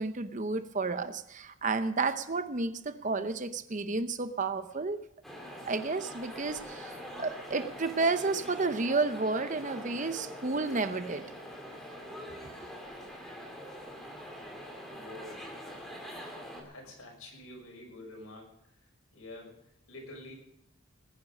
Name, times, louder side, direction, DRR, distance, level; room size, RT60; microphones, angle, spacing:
voice 1, 0.0-5.0 5.6-11.2, right 3 dB, 35° right, 10 dB, 0.8 m, -31 dB
sound 1, 5.2-16.6, equal, ahead, 2.7 m, -44 dB
voice 2, 14.9-15.5 16.5-18.5 19.1-19.5 19.9-20.3, left 1 dB, 80° left, 1 dB, 5.8 m, -47 dB
20.5 x 10.0 x 5.3 m, 0.79 s
head